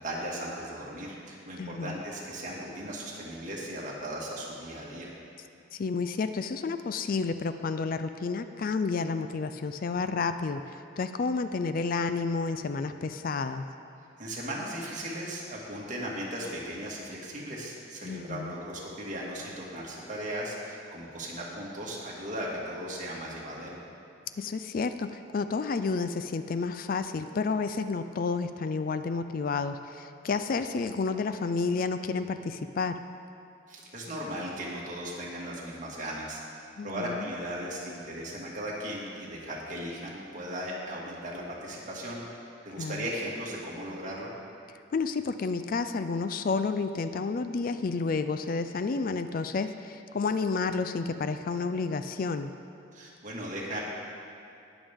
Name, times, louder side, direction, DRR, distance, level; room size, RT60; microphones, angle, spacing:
voice 1, 0.0-5.1 14.2-23.8 33.7-36.4 36.8-42.2 42.7-44.3 52.9-53.8, equal, 40° right, -4 dB, 2.0 m, -37 dB
voice 2, 1.6-2.0 5.7-13.6 18.0-18.5 24.4-33.0 36.8-37.3 42.8-43.0 44.9-52.5, left 4 dB, 50° left, 10 dB, 0.4 m, -30 dB
19.5 x 7.1 x 3.6 m, 2.6 s
head